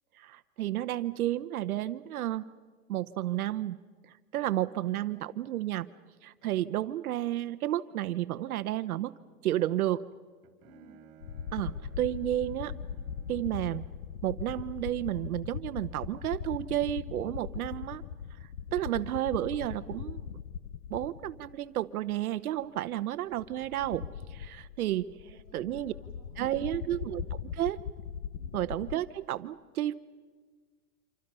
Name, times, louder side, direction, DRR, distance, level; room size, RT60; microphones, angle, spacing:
voice 1, 0.2-2.4 2.9-3.8 4.3-5.9 6.2-9.1 9.4-10.0 11.5-12.8 13.3-13.8 14.2-18.0 18.7-20.3 20.9-24.0 24.3-25.1 25.5-25.9 26.4-27.8 28.5-29.9, right 13 dB, 70° right, 12 dB, 0.9 m, -31 dB
voice 2, 4.5-5.4 10.6-11.0 25.1-27.1 28.4-28.6, right 1 dB, 20° left, 0 dB, 8.0 m, -58 dB
Bowed string instrument, 10.1-14.3, right 8 dB, 30° right, 2.8 m, -57 dB
sound 1, 11.2-21.8 22.1-22.2 23.3-29.0, left 8 dB, 75° left, 1.0 m, -40 dB
27.0 x 26.5 x 5.5 m, 1.5 s
hypercardioid pair, 155°, 45 cm